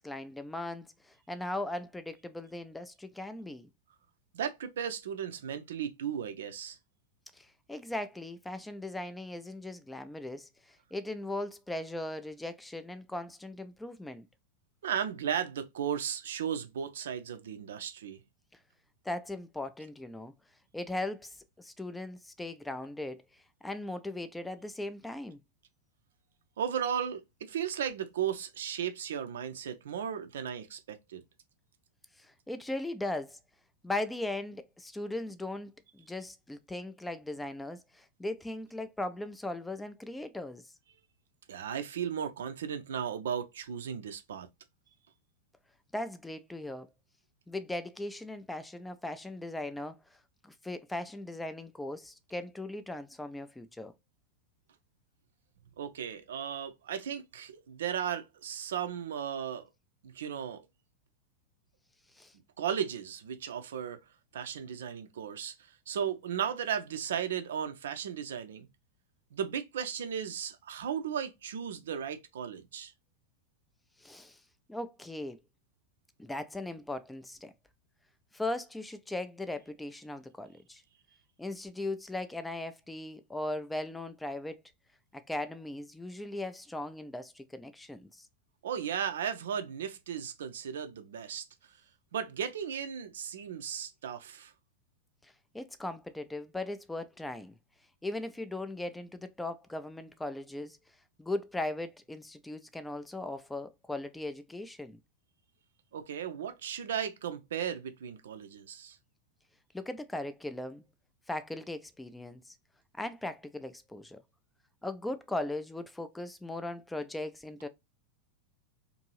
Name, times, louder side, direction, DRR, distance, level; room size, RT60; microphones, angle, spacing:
voice 1, 0.0-3.7 7.3-14.3 18.5-18.6 19.0-20.3 20.7-25.4 32.2-33.4 33.8-40.7 45.9-46.9 47.5-53.9 62.1-62.3 74.0-74.4 74.7-75.4 76.2-77.5 78.3-80.8 81.4-84.6 85.1-88.3 95.2-97.5 98.0-100.8 101.2-105.0 109.7-110.8 111.3-112.5 113.0-114.2 114.8-117.7, left 2 dB, 5° left, 0.4 m, -38 dB
voice 2, 4.3-6.8 14.8-18.2 26.6-31.2 41.5-44.5 55.8-59.7 60.0-60.6 62.6-64.0 64.3-65.5 65.9-68.7 69.3-72.9 88.6-91.5 92.1-94.5 105.9-109.0, right 8 dB, 60° right, 0.5 m, -35 dB
2.6 x 2.6 x 2.9 m
figure-of-eight pair, 90°, 0 cm